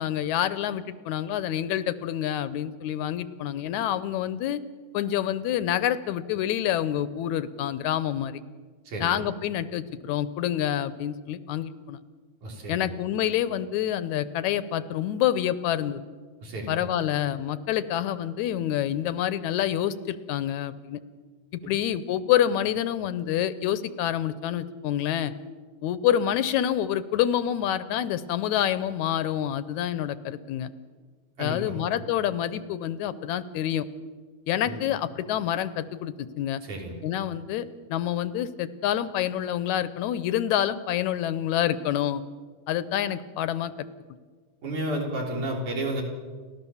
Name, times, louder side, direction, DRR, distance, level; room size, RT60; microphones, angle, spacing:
voice 1, 0.0-4.6 4.9-8.4 9.0-12.0 12.7-16.0 16.7-21.0 21.5-25.3 25.8-30.7 31.4-33.9 34.5-36.6 37.0-42.2 42.7-43.7, left 11 dB, 75° left, 14 dB, 2.0 m, -27 dB
voice 2, 12.4-12.9 16.4-16.8 31.4-31.8 34.6-34.8 36.6-37.0 44.6-46.0, right 1 dB, 75° right, 0 dB, 5.2 m, -32 dB
30.0 x 12.5 x 7.1 m, 1.5 s
omnidirectional pair, 3.5 m